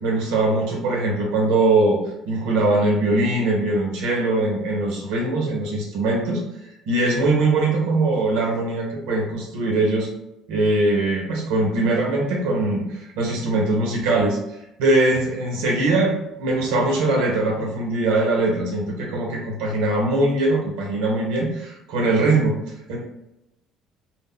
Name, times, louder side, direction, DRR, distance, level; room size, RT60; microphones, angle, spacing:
voice 1, 0.0-6.4 6.9-10.1 10.5-14.4 14.8-22.5 22.9-23.0, right 2 dB, 85° right, -1 dB, 0.6 m, -21 dB
2.0 x 2.0 x 3.6 m, 0.87 s
supercardioid pair, 90°, 0 cm